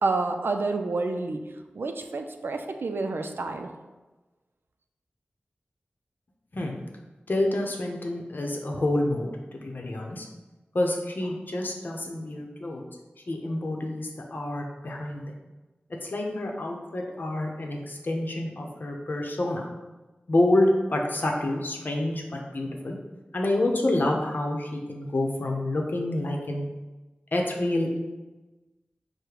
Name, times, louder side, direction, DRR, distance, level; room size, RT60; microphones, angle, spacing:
voice 1, 0.0-1.4 1.7-3.7, right 3 dB, 75° right, 5 dB, 0.4 m, -29 dB
voice 2, 7.3-10.2 10.7-12.8 13.3-15.3 16.0-19.6 20.3-23.0 23.3-26.7 27.3-28.0, left 1 dB, 60° left, 1 dB, 0.7 m, -28 dB
5.0 x 2.1 x 4.6 m, 1.2 s
wide cardioid pair, 70°, 4 cm